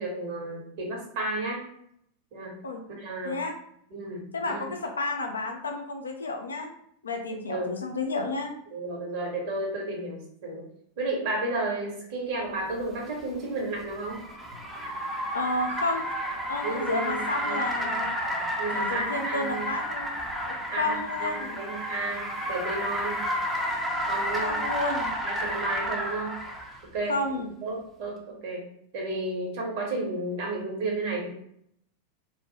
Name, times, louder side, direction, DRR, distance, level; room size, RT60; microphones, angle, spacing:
voice 1, 0.0-1.7 2.3-2.6 2.9-3.3 3.9-4.7 7.5-7.8 8.7-10.6 11.0-14.2 16.6-17.2 17.4-18.0 18.6-19.7 20.7-23.2 24.1-24.6 25.2-26.4 26.9-27.1 27.6-28.7 28.9-31.3, right 2 dB, 50° right, -1 dB, 0.9 m, -32 dB
voice 2, 4.3-6.7 7.0-8.5 15.3-16.0 16.5-18.2 18.7-20.1 20.5-21.6 24.4-25.2 27.1-27.5, left 2 dB, 75° left, 3 dB, 0.4 m, -31 dB
Car, 12.8-26.8, equal, 5° right, 0.5 m, -31 dB
2.1 x 2.0 x 3.1 m, 0.71 s
figure-of-eight pair, 90°, 0 cm